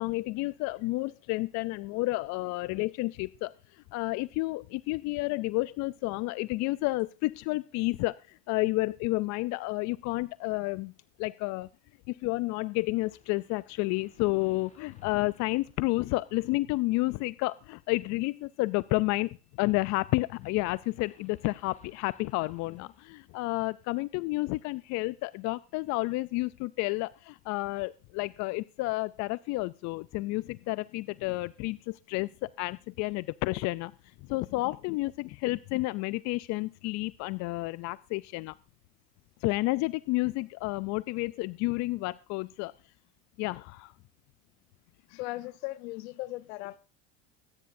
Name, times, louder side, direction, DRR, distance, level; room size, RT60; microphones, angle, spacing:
voice 1, 0.0-10.9 11.2-11.7 12.1-19.3 19.6-33.9 34.2-38.5 39.4-42.7 43.4-43.9, left 21 dB, 60° left, 0.5 m, -31 dB
sound 1, 12.9-16.6 17.0-17.3 18.5-23.8 24.1-24.2, left 3 dB, 25° left, 5.3 m, -63 dB
voice 2, 45.1-46.8, left 19 dB, 80° left, 0.9 m, -38 dB
23.5 x 9.9 x 2.7 m
supercardioid pair, 90°, 31 cm